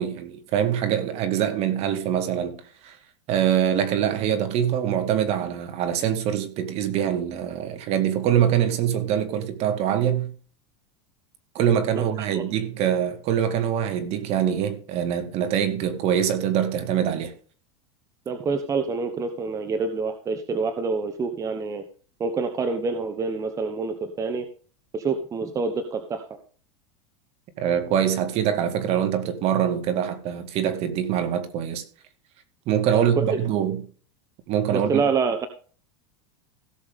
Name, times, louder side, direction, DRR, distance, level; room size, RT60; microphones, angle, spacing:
voice 1, 0.0-3.0 3.3-10.3 11.5-17.3 27.6-31.8 32.7-33.8 34.5-35.0, right 9 dB, 45° right, 2.0 m, -24 dB
voice 2, 18.3-21.8 22.2-24.4 24.9-26.2 32.9-33.2 34.7-35.5, right 4 dB, 20° right, 1.0 m, -27 dB
16.5 x 7.0 x 3.6 m
supercardioid pair, 140°, 15 cm